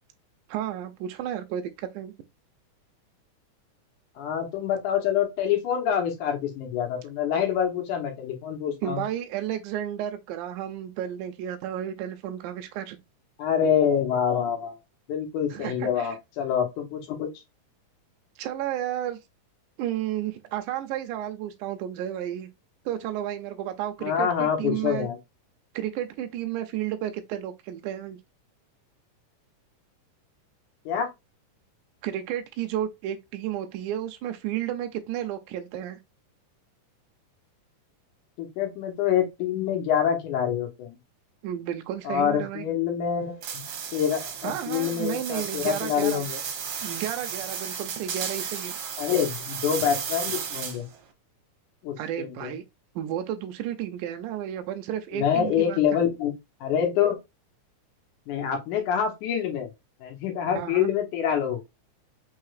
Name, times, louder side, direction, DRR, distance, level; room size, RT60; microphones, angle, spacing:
voice 1, 0.5-2.1 8.8-13.0 15.5-16.2 18.4-19.2 19.8-22.5 22.9-25.1 25.7-28.2 32.0-36.0 41.4-42.7 44.4-46.2 46.8-48.7 52.0-52.6 53.0-55.8 60.6-60.9, right 11 dB, 85° right, 2.1 m, -32 dB
voice 2, 4.2-9.0 13.4-14.8 15.1-17.3 24.0-25.2 30.9-31.1 38.4-41.0 42.0-43.6 43.9-46.4 49.0-50.8 51.8-52.5 55.1-56.3 56.6-57.2 58.3-59.7 60.0-61.6, left 8 dB, 80° left, 2.6 m, -26 dB
sound 1, 43.4-51.0, right 7 dB, 65° right, 1.5 m, -34 dB
5.6 x 3.2 x 2.4 m
omnidirectional pair, 3.6 m